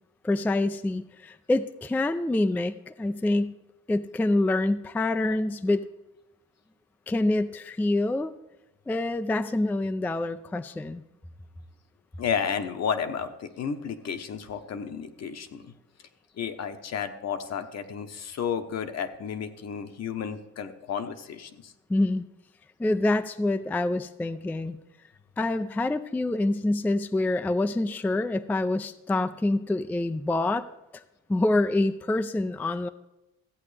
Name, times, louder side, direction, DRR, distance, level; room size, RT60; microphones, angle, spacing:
voice 1, 0.2-3.5 3.9-5.9 7.1-8.3 8.9-11.0 21.9-22.2 22.8-24.8 25.4-30.7 30.9-31.0 31.3-32.9, left 2 dB, 5° left, 10 dB, 0.3 m, -26 dB
voice 2, 12.2-15.7 16.4-21.7, left 7 dB, 60° left, 8 dB, 1.0 m, -32 dB
14.5 x 8.4 x 3.3 m, 0.97 s
cardioid pair, 90°, 30 cm